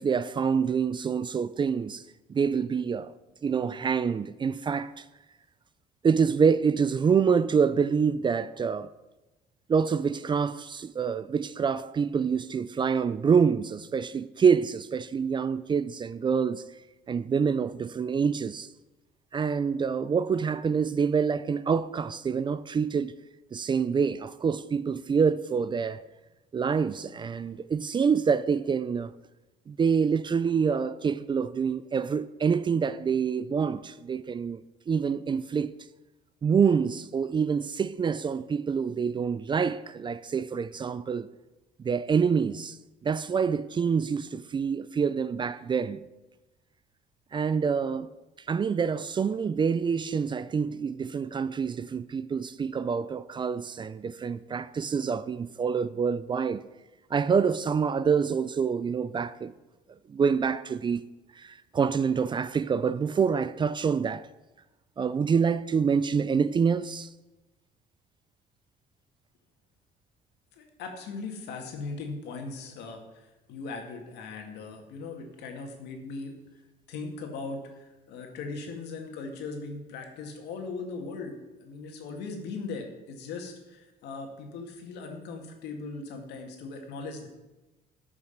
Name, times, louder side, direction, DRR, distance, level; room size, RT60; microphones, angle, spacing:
voice 1, 0.0-2.0 2.3-3.1 3.4-5.0 6.0-8.9 9.7-16.7 17.1-18.7 19.3-23.1 23.5-26.0 26.5-29.1 29.7-34.6 34.9-35.7 36.4-41.3 41.8-42.8 43.0-46.0 47.3-48.1 48.5-56.6 57.1-59.5 60.1-61.0 61.4-64.3 65.0-67.1, right 6 dB, 30° right, 0.4 m, -26 dB
voice 2, 70.6-76.3 76.9-87.3, left 4 dB, 80° left, 2.2 m, -39 dB
13.0 x 6.2 x 5.8 m
cardioid pair, 110°, 17 cm